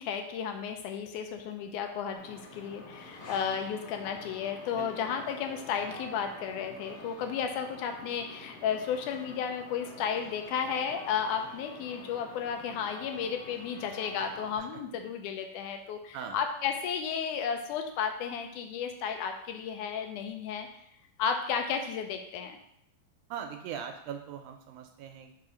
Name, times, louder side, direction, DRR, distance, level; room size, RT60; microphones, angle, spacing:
voice 1, 0.0-20.7 21.2-22.6, left 7 dB, 80° left, 5 dB, 1.9 m, -33 dB
sound 1, 2.1-14.6, left 2 dB, 50° left, 1.9 m, -48 dB
voice 2, 23.3-25.3, right 8 dB, 80° right, 5 dB, 1.9 m, -40 dB
4.8 x 4.2 x 5.0 m, 0.78 s
omnidirectional pair, 3.8 m